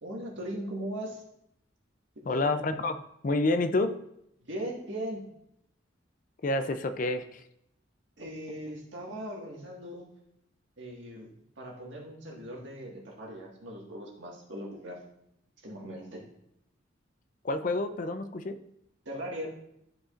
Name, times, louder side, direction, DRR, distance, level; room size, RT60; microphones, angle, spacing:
voice 1, 0.0-1.2 2.3-2.5 4.4-5.2 8.2-10.1 10.8-11.3 11.6-15.0 15.6-16.3 19.1-19.5, right 1 dB, 70° right, -1 dB, 1.7 m, -39 dB
voice 2, 2.3-3.0 3.2-4.0 6.4-7.4 17.4-18.6, left 2 dB, 40° left, 10 dB, 0.4 m, -28 dB
12.5 x 5.0 x 2.5 m, 0.78 s
head